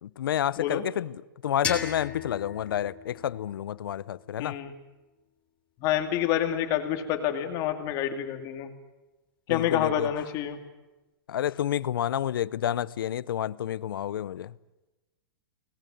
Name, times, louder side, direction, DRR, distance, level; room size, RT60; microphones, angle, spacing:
voice 1, 0.0-4.6 9.5-10.1 11.3-14.5, left 10 dB, 75° left, 0.8 m, -29 dB
sound 1, 1.6-4.5, left 7 dB, 10° left, 3.3 m, -37 dB
voice 2, 4.4-4.7 5.8-8.7 9.5-10.6, left 10 dB, 30° left, 2.7 m, -28 dB
25.0 x 19.5 x 9.3 m
hypercardioid pair, 155°, 12 cm